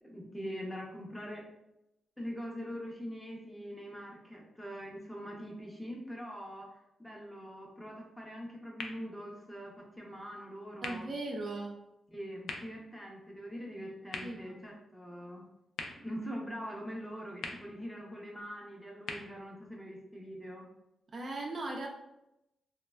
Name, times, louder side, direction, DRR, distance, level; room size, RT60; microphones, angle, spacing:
voice 1, 0.0-1.4 2.2-11.1 12.1-15.4 15.9-20.7, equal, ahead, -1 dB, 0.6 m, -43 dB
sound 1, 8.7-20.6, left 4 dB, 90° left, 0.3 m, -49 dB
voice 2, 10.8-11.7 14.2-14.6 21.1-21.9, right 2 dB, 45° right, 1 dB, 0.3 m, -38 dB
3.2 x 2.1 x 2.2 m, 0.88 s
cardioid pair, 110°, 0 cm